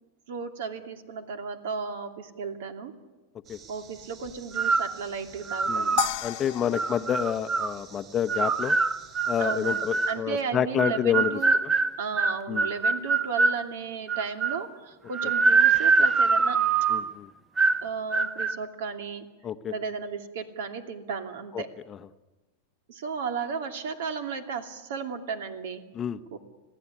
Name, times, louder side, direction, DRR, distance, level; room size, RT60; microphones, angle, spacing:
voice 1, 0.3-2.9 3.7-6.1 9.4-9.8 10.1-11.6 12.0-16.7 17.8-19.3 19.7-21.7 22.9-25.8 26.3-26.4, right 5 dB, 75° right, 6 dB, 2.7 m, -34 dB
sound 1, 3.4-10.1, right 6 dB, 30° right, 6.2 m, -51 dB
sound 2, 4.5-5.0 5.5-6.1 6.7-7.7 8.3-10.2 10.8-13.6 14.1-14.7 15.1-17.1 17.6-17.9 18.1-18.6, right 4 dB, 15° right, 0.7 m, -24 dB
sound 3, 6.0-8.4, left 19 dB, 55° left, 1.0 m, -34 dB
voice 2, 6.2-8.8 9.3-11.7 12.5-12.7 16.9-17.3 19.4-19.7 21.5-21.6 26.0-26.2, left 9 dB, 25° left, 11 dB, 0.8 m, -28 dB
26.5 x 16.5 x 9.8 m, 1.2 s
supercardioid pair, 150°, 0 cm